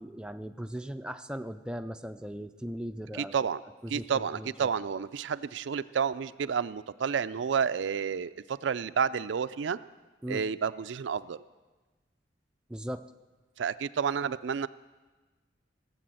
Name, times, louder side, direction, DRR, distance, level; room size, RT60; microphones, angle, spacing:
voice 1, 0.0-3.5 3.8-4.7 10.2-10.4 12.7-13.0, equal, 5° right, 8 dB, 0.4 m, -38 dB
voice 2, 3.2-3.6 3.9-9.8 10.3-11.4 13.6-14.7, right 6 dB, 80° right, 14 dB, 0.4 m, -30 dB
17.0 x 7.7 x 7.7 m, 1.3 s
head